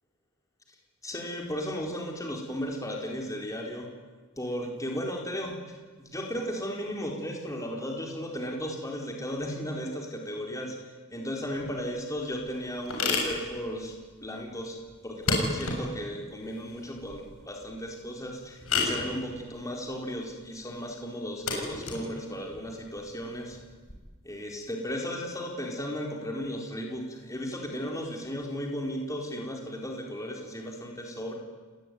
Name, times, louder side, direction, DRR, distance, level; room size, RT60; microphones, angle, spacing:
voice 1, 1.0-3.9 4.4-10.8 11.1-23.6 24.2-31.4, equal, 15° left, 1 dB, 4.2 m, -35 dB
sound 1, 11.5-23.9, left 3 dB, 75° left, 7.0 m, -34 dB
29.5 x 19.5 x 9.4 m, 1.4 s
head